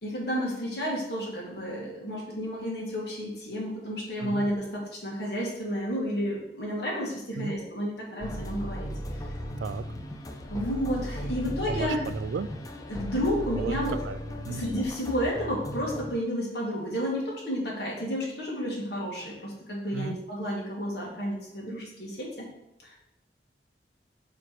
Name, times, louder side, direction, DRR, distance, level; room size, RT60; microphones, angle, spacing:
voice 1, 0.0-8.9 10.5-12.0 12.9-14.0 14.5-22.4 22.8-22.9, equal, 60° left, -3 dB, 1.9 m, -31 dB
sound 1, 8.2-16.1, equal, 20° left, 0.5 m, -36 dB
voice 2, 11.7-12.5 13.6-14.2 14.5-14.7 19.9-20.2, right 5 dB, 75° right, 14 dB, 0.3 m, -34 dB
5.0 x 4.5 x 4.6 m, 0.83 s
head